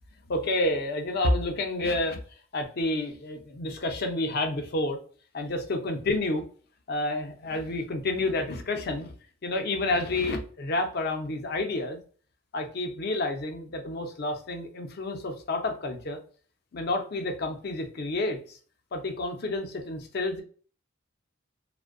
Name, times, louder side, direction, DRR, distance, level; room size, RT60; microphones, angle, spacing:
voice 1, 0.3-2.2 2.5-5.0 5.3-6.4 6.9-9.1 9.4-12.0 12.5-16.2 16.7-18.6 18.9-20.4, left 2 dB, 55° left, 5 dB, 0.5 m, -29 dB
2.5 x 2.1 x 2.4 m, 0.42 s
head